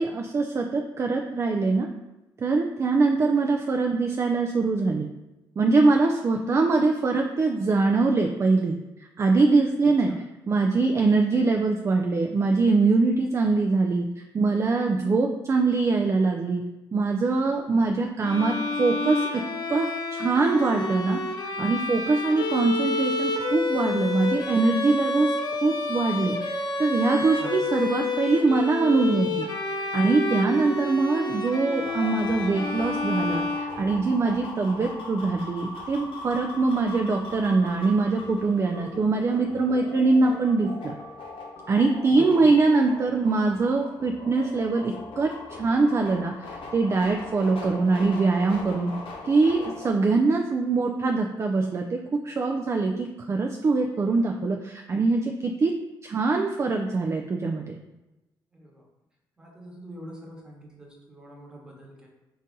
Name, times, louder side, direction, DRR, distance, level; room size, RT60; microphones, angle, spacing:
voice 1, 0.0-1.9 2.4-5.1 5.6-8.7 9.2-10.1 10.5-16.6 16.9-19.4 19.7-21.2 21.6-25.4 25.6-40.9 41.7-48.9 49.2-55.7 56.0-57.8, right 3 dB, 30° right, 2 dB, 0.3 m, -23 dB
voice 2, 9.8-10.2 27.4-27.6 42.1-42.5 58.5-58.8 59.4-62.1, right 1 dB, 10° right, -2 dB, 1.1 m, -44 dB
Bowed string instrument, 18.2-34.2, left 3 dB, 55° left, 0.6 m, -29 dB
sound 1, 31.8-49.9, left 2 dB, 75° left, 0.9 m, -40 dB
4.0 x 2.6 x 3.7 m, 1.0 s
cardioid pair, 85°, 9 cm